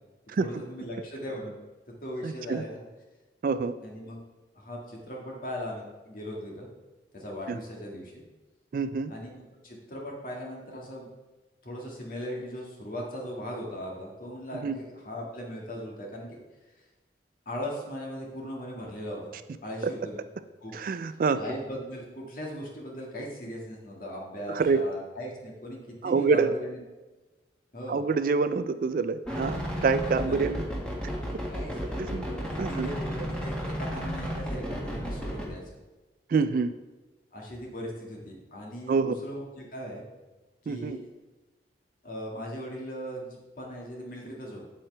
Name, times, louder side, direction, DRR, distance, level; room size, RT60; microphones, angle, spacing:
voice 1, 0.4-1.6 2.0-2.8 3.8-4.2 4.5-6.7 7.1-8.2 9.1-11.1 11.6-16.4 17.5-19.4 19.6-20.2 20.6-20.7 21.3-26.8 27.7-28.0 30.3-30.5 31.5-32.0 32.3-35.8 37.3-40.0 40.6-41.1 42.0-44.6, equal, 50° left, -2 dB, 1.8 m, -38 dB
voice 2, 2.2-2.6 3.4-3.7 7.5-7.6 8.7-9.1 14.6-14.8 19.8-19.9 20.7-21.4 24.5-24.8 26.0-26.5 27.9-30.6 32.0-32.3 32.6-32.9 36.3-36.7 38.9-39.1 40.7-41.0, right 4 dB, 50° right, 12 dB, 0.3 m, -26 dB
sound 1, 29.3-35.5, equal, 5° left, 1.6 m, -33 dB
8.5 x 7.6 x 3.3 m, 1.2 s
head